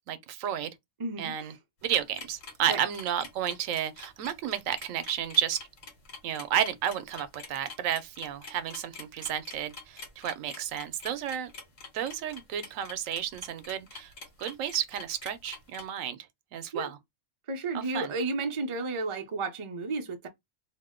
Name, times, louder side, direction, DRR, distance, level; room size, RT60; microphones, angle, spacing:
voice 1, 0.1-0.7 1.2-1.5 1.8-5.6 6.2-11.5 11.9-14.1 14.4-16.3 16.5-17.0 17.7-18.1, right 10 dB, 90° right, 1.0 m, -32 dB
voice 2, 1.0-1.5 2.7-2.8 16.7-16.9 17.5-20.3, right 3 dB, 35° right, 0.5 m, -32 dB
sound 1, 1.8-15.8, left 4 dB, 75° left, 1.5 m, -45 dB
2.7 x 2.0 x 3.5 m
omnidirectional pair, 1.3 m